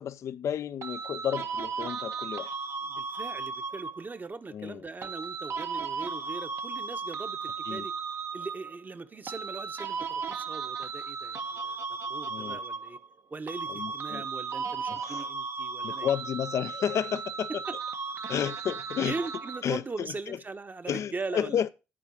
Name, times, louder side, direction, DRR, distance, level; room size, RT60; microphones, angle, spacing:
voice 1, 0.0-2.5 4.5-4.8 7.7-7.9 12.3-12.6 13.7-14.3 14.9-15.3 15.8-17.6 18.3-19.2 19.6-20.4 20.9-21.7, left 9 dB, 60° left, 0.6 m, -32 dB
sound 1, 0.8-4.2 5.0-8.8 9.3-13.2 13.5-19.8, right 5 dB, 55° right, 1.1 m, -36 dB
voice 2, 2.9-7.9 8.3-13.0 13.3-16.1 17.5-17.6 19.0-21.7, right 3 dB, 30° right, 1.1 m, -40 dB
12.5 x 4.6 x 6.3 m
hypercardioid pair, 50°, 6 cm